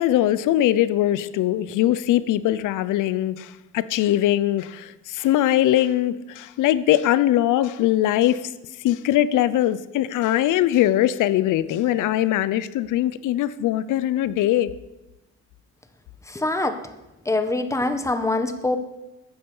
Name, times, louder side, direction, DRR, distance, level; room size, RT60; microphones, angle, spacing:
voice 1, 0.0-8.5 8.8-14.7, left 13 dB, 90° left, 0.7 m, -21 dB
voice 2, 16.3-16.8 17.2-18.8, left 2 dB, 10° left, 1.3 m, -24 dB
14.5 x 10.0 x 5.6 m
cardioid pair, 90°, 30 cm